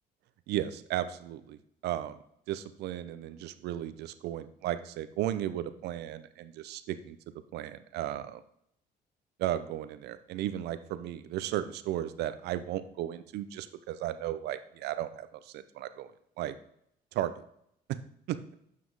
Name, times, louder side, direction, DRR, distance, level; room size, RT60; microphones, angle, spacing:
voice 1, 0.5-1.6 1.8-2.1 2.5-7.2 7.5-8.4 9.4-16.1 16.4-16.5 17.1-17.3 18.3-18.4, right 12 dB, 80° right, 12 dB, 0.6 m, -35 dB
7.4 x 6.0 x 4.8 m, 0.72 s
cardioid pair, 110°, 17 cm